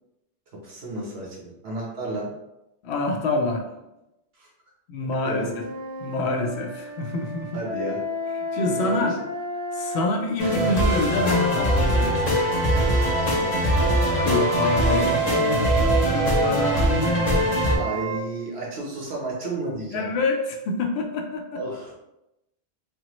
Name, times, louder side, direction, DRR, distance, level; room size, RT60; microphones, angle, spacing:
voice 1, 0.6-2.3 4.4-4.5 5.2-5.5 7.5-8.0 8.6-9.1 13.3-13.6 14.8-15.1 17.7-20.1 21.5-21.9, right 2 dB, 75° right, -3 dB, 1.2 m, -32 dB
voice 2, 2.8-3.6 4.9-5.5 6.0-7.6 8.4-9.2 9.7-12.3 14.1-15.1 15.4-17.5 19.9-21.6, left 2 dB, 90° left, 2 dB, 0.8 m, -26 dB
sound 1, 5.5-10.0 10.8-16.1 16.9-18.2, right 1 dB, 40° right, 0.7 m, -31 dB
sound 2, 10.4-17.8, equal, 45° left, 0.8 m, -22 dB
3.3 x 2.1 x 2.9 m, 0.90 s
omnidirectional pair, 1.1 m